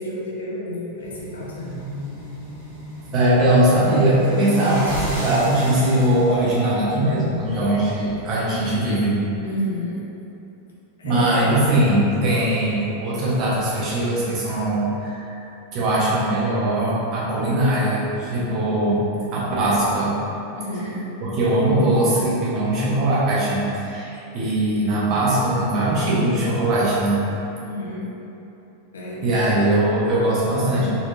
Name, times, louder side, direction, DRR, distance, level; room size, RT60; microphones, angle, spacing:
voice 1, 0.0-1.7 9.4-10.0 11.0-11.4 20.6-21.0 27.6-28.1 28.9-29.2, left 1 dB, 70° left, -5 dB, 0.7 m, -30 dB
sound 1, 1.0-8.2, right 1 dB, 60° right, 1.4 m, -34 dB
voice 2, 3.1-9.2 11.0-15.5 15.7-20.2 21.2-27.2 29.2-30.9, right 1 dB, 40° right, -8 dB, 1.1 m, -20 dB
4.0 x 3.1 x 2.6 m, 2.9 s
figure-of-eight pair, 90°, 0 cm